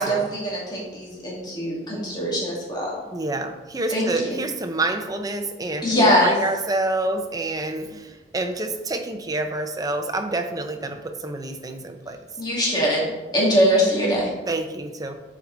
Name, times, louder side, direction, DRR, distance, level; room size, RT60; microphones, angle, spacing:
voice 1, 0.0-3.0 3.9-4.3 5.8-6.4 12.4-14.3, equal, 25° left, -4 dB, 2.1 m, -22 dB
voice 2, 3.1-12.2 14.5-15.2, right 2 dB, 20° right, 6 dB, 0.6 m, -28 dB
8.3 x 4.7 x 3.8 m, 1.2 s
head